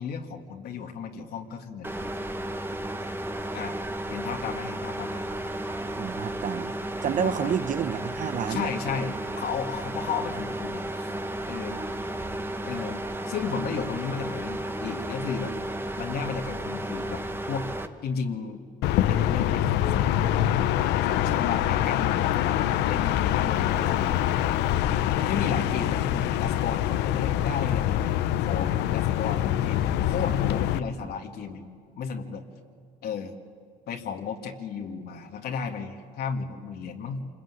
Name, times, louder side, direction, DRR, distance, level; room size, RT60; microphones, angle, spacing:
voice 1, 0.0-2.0 3.5-3.8 4.1-5.2 7.1-7.5 8.5-11.1 11.5-11.8 12.6-15.6 16.0-17.2 17.5-17.7 18.0-18.6 19.1-20.3 20.9-24.2 24.5-24.6 25.2-31.7 32.0-32.4 33.0-33.4 33.9-37.3, left 6 dB, 65° left, 2 dB, 2.1 m, -34 dB
sound 1, 1.8-17.9, right 1 dB, 15° right, 1.6 m, -33 dB
voice 2, 6.0-6.7 7.0-8.7, right 8 dB, 50° right, 15 dB, 1.0 m, -29 dB
sound 2, 18.8-30.8, left 12 dB, 90° left, 0.9 m, -25 dB
27.5 x 21.0 x 9.6 m, 2.2 s
cardioid pair, 110°, 17 cm